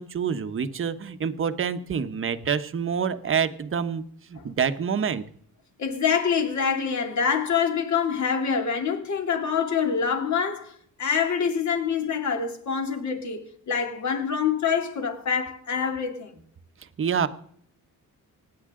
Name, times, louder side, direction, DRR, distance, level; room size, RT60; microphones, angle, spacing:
voice 1, 0.0-5.2 16.8-17.3, right 7 dB, 35° right, 1.0 m, -27 dB
voice 2, 5.8-10.7 11.0-16.3, left 6 dB, 50° left, 2.7 m, -26 dB
25.5 x 9.6 x 3.7 m
cardioid pair, 125°, 36 cm